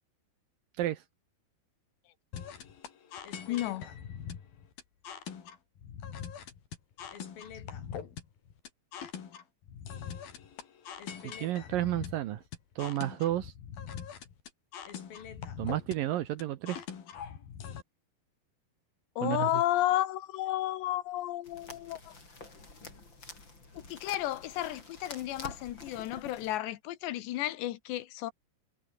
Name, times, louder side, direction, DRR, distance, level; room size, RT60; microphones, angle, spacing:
sound 1, 2.3-17.8, left 8 dB, 60° left, 4.6 m, -43 dB
voice 1, 3.5-3.9 19.2-22.1 23.8-28.3, left 14 dB, 85° left, 3.5 m, -32 dB
voice 2, 11.2-12.4 12.8-13.5 15.6-16.8 19.2-19.6, right 13 dB, 70° right, 2.3 m, -31 dB
sound 2, 21.4-26.6, left 3 dB, 25° left, 6.0 m, -48 dB
omnidirectional pair, 4.9 m